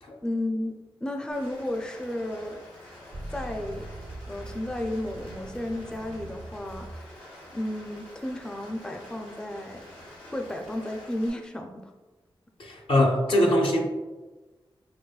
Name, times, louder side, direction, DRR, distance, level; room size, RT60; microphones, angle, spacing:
voice 1, 0.2-2.6 3.3-3.9 4.3-7.1 7.5-9.8 10.3-11.9, left 1 dB, 10° left, 3 dB, 0.4 m, -33 dB
Rain, 1.3-11.3, left 1 dB, 85° left, 1.0 m, -48 dB
sound 1, 3.1-7.1, right 2 dB, 65° right, 0.5 m, -42 dB
voice 2, 12.6-13.8, left 1 dB, 65° left, 1 dB, 0.6 m, -22 dB
4.7 x 2.1 x 2.2 m, 1.2 s
cardioid pair, 40°, 10 cm